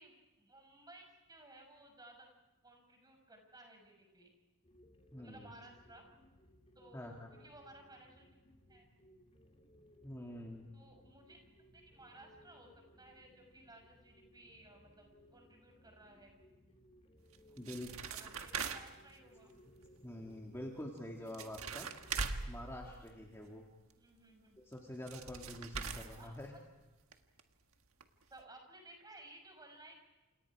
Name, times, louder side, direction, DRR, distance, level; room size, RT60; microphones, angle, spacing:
voice 1, 0.0-2.3 2.6-4.3 5.2-6.1 6.7-8.3 8.7-8.8 10.7-11.4 11.7-16.4 17.5-19.6 24.0-24.6 26.1-26.6 28.3-29.9, right 1 dB, 20° right, 3 dB, 6.2 m, -58 dB
sound 1, 4.6-22.2, equal, 30° left, 3.2 m, -64 dB
voice 2, 5.1-5.5 6.9-7.3 10.0-10.6 17.6-17.9 20.0-21.9 22.5-23.6 24.7-26.5, left 1 dB, 10° left, -1 dB, 2.3 m, -46 dB
sound 2, 17.3-19.1 21.0-21.1 21.3-23.5 24.7-24.8 25.1-26.8 27.1-27.2 27.4-27.5 28.0-28.1 28.4-28.5, right 5 dB, 65° right, 1.6 m, -42 dB
29.0 x 28.5 x 4.9 m, 1.1 s
head